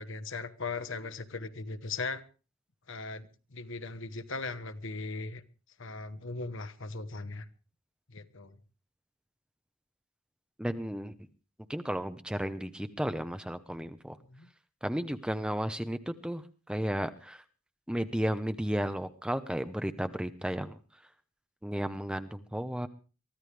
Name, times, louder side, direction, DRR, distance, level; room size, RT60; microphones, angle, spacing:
voice 1, 0.0-2.2 2.9-5.4 5.8-7.5 8.1-8.6 14.2-14.5, left 3 dB, 60° left, 10 dB, 1.2 m, -38 dB
voice 2, 10.6-11.1 11.7-14.2 14.8-17.4 17.9-20.8 21.6-22.9, equal, 5° right, 9 dB, 0.8 m, -33 dB
23.5 x 14.5 x 3.4 m, 0.34 s
head